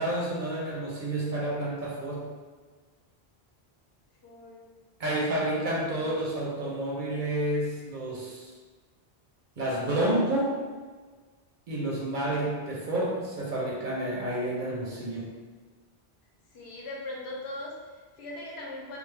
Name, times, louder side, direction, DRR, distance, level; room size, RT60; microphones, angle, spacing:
voice 1, 0.0-2.3 5.0-8.5 9.6-10.6 11.7-15.3, right 1 dB, 55° right, -5 dB, 0.8 m, -29 dB
voice 2, 4.2-4.6 16.5-19.0, left 1 dB, 80° left, -3 dB, 1.0 m, -40 dB
3.3 x 2.0 x 3.2 m, 1.4 s
omnidirectional pair, 1.1 m